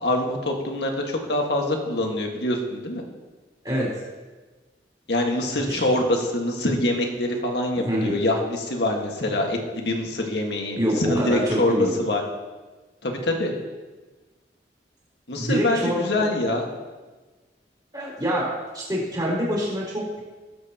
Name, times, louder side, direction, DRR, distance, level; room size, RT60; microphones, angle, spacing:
voice 1, 0.0-3.0 5.1-12.2 13.0-13.5 15.3-16.6, left 1 dB, 75° left, 1 dB, 1.7 m, -25 dB
voice 2, 3.6-4.0 5.6-5.8 7.7-8.1 10.8-11.9 15.4-16.1 17.9-20.2, equal, 25° right, -5 dB, 3.9 m, -26 dB
19.0 x 7.9 x 3.0 m, 1.3 s
head